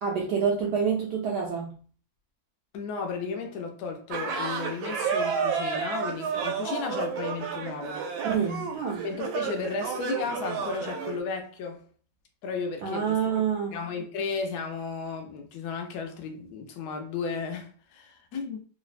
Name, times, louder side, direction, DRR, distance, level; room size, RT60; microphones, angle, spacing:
voice 1, 0.0-1.8 8.2-9.1 12.8-13.8, right 7 dB, 75° right, 1.0 m, -27 dB
voice 2, 2.7-8.1 9.0-11.8 12.4-13.2 13.7-18.7, left 5 dB, 70° left, 0.9 m, -34 dB
sound 1, 4.1-11.2, right 6 dB, 90° right, 1.3 m, -31 dB
3.2 x 2.0 x 2.4 m
omnidirectional pair, 2.1 m